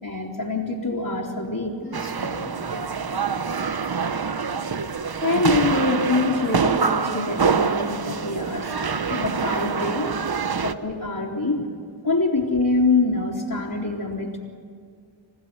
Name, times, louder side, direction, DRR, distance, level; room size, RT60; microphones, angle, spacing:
voice 1, 0.0-1.8 5.2-10.1 10.6-11.7 12.0-14.4, left 3 dB, 50° left, -7 dB, 3.3 m, -25 dB
voice 2, 1.4-3.2 4.4-4.6 11.2-11.3 11.6-11.7, left 2 dB, 25° left, -5 dB, 2.5 m, -44 dB
sound 1, 1.9-10.7, right 5 dB, 50° right, 1.0 m, -25 dB
28.5 x 15.0 x 9.6 m, 2.1 s
wide cardioid pair, 60°, 47 cm